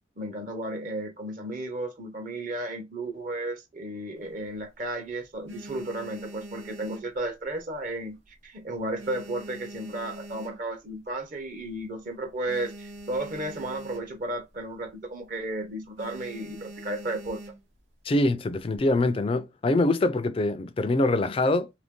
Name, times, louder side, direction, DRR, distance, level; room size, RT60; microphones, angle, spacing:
voice 1, 0.2-8.2 8.4-17.4, right 1 dB, 45° right, 0.7 m, -34 dB
sound 1, 4.2-4.9 5.3-7.8 8.1-8.4 8.7-11.0 11.4-11.5 11.7-11.8 12.2-14.4 14.7-14.9 15.3-15.5 16.0-17.8 18.5-19.1, right 1 dB, 85° right, 1.0 m, -44 dB
voice 2, 18.1-21.7, left 2 dB, 30° left, 0.3 m, -24 dB
2.9 x 2.5 x 3.5 m
head